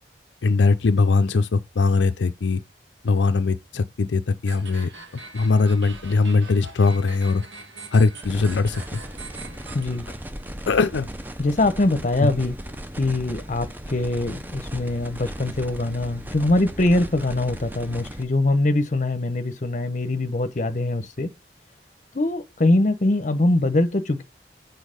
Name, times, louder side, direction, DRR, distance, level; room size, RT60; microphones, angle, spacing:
voice 1, 0.4-2.6 3.0-4.9 5.3-7.4 7.9-9.0 10.7-11.1 12.2-12.3, left 4 dB, 80° left, 0.5 m, -20 dB
sound 1, 4.5-10.5, right 3 dB, 85° right, 2.1 m, -42 dB
sound 2, 8.2-18.2, equal, 10° right, 0.6 m, -37 dB
voice 2, 9.7-10.0 11.4-12.6 12.9-21.3 22.1-24.2, left 2 dB, 40° left, 0.8 m, -23 dB
6.4 x 4.0 x 5.1 m
head